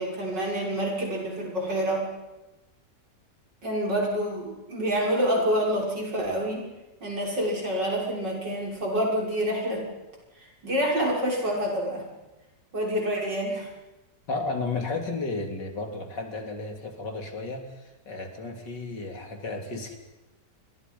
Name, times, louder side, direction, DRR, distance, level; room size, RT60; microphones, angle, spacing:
voice 1, 0.0-2.1 3.6-6.7 7.0-9.8 10.6-12.0 12.7-13.7, equal, 85° right, -2 dB, 7.2 m, -27 dB
voice 2, 14.3-20.0, left 3 dB, 90° left, 4 dB, 3.8 m, -33 dB
28.0 x 24.5 x 5.6 m, 1.0 s
omnidirectional pair, 1.8 m